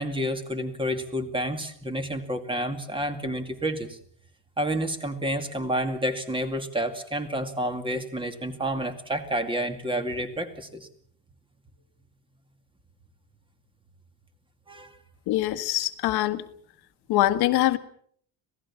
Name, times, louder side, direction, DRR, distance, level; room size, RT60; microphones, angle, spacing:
voice 1, 0.0-4.0 4.6-10.9 14.7-15.0, right 1 dB, 15° right, 7 dB, 2.3 m, -29 dB
voice 2, 15.3-16.4 17.1-17.8, left 14 dB, 75° left, 9 dB, 1.6 m, -23 dB
26.5 x 18.0 x 7.2 m, 0.62 s
cardioid pair, 160°, 38 cm